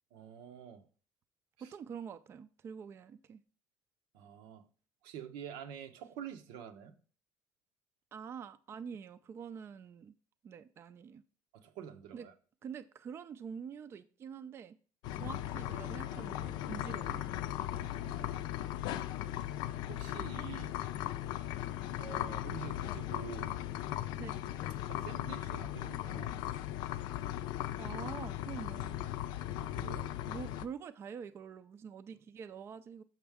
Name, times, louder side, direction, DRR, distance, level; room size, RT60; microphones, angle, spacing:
voice 1, 0.1-0.8 1.6-1.7 4.1-4.6 5.0-6.9 11.5-12.3 17.7-18.5 19.9-20.7 22.0-23.5 24.9-26.5 29.6-30.1, right 9 dB, 90° right, 0.9 m, -47 dB
voice 2, 1.6-3.4 8.1-10.1 10.4-11.2 12.1-12.3 12.6-14.8 15.1-17.4 24.2-24.4 27.8-29.0 30.3-33.0, right 7 dB, 35° right, 0.4 m, -46 dB
sound 1, 15.0-30.7, left 13 dB, 75° left, 0.4 m, -38 dB
6.4 x 6.0 x 3.5 m
cardioid pair, 135°, 8 cm